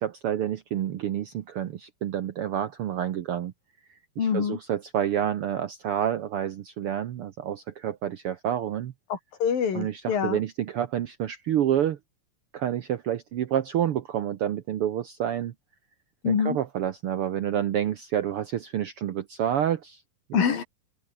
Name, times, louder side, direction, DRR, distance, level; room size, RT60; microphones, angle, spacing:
voice 1, 0.0-3.5 4.2-8.9 9.7-12.0 12.5-15.5 16.2-20.0 20.3-20.4, right 10 dB, 85° right, 1.2 m, -28 dB
voice 2, 4.2-4.6 9.1-10.4 16.2-16.6 20.3-20.6, left 7 dB, 80° left, 5.1 m, -25 dB
open air
omnidirectional pair, 4.0 m